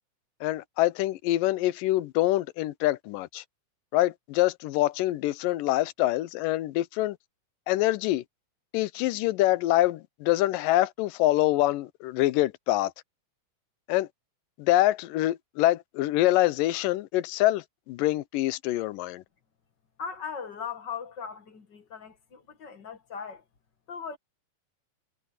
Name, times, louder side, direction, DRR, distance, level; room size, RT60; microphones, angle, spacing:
voice 1, 0.4-3.4 3.9-7.2 7.7-8.2 8.7-12.9 13.9-14.1 14.6-19.2, left 16 dB, 90° left, 2.4 m, -25 dB
voice 2, 20.0-23.4 23.9-24.2, left 6 dB, 40° left, 1.8 m, -38 dB
omnidirectional pair, 3.8 m